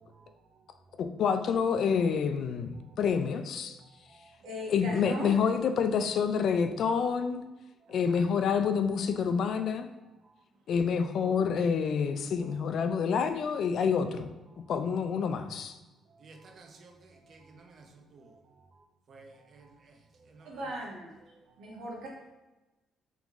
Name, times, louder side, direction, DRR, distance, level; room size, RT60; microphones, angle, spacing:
voice 1, 0.0-0.3 0.9-1.0 2.8-3.0 3.8-4.3 7.8-7.9 16.1-18.7 19.1-19.9 20.2-20.7, right 3 dB, 45° right, 0.6 m, -55 dB
voice 2, 1.0-3.8 4.7-7.4 7.9-9.9 10.7-14.3 14.7-15.8, left 6 dB, 60° left, 0.3 m, -28 dB
voice 3, 4.4-5.4 7.9-8.2 20.4-21.1 21.6-22.3, equal, 70° right, 1.2 m, -38 dB
3.7 x 3.0 x 3.6 m
cardioid pair, 130°, 0 cm